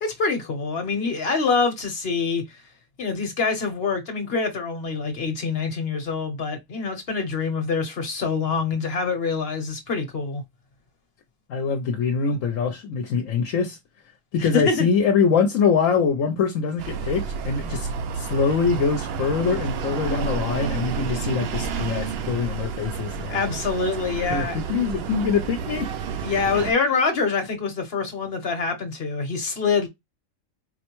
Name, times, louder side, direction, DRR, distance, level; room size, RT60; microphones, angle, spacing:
voice 1, 0.0-2.4 3.0-10.4 14.4-14.9 23.3-24.6 26.2-29.9, left 4 dB, 50° left, 1.1 m, -25 dB
voice 2, 11.5-13.8 14.3-23.4 24.3-25.9, left 5 dB, 75° left, 1.0 m, -24 dB
sound 1, 16.8-26.7, right 6 dB, 65° right, 0.6 m, -30 dB
4.3 x 2.1 x 2.9 m
omnidirectional pair, 1.4 m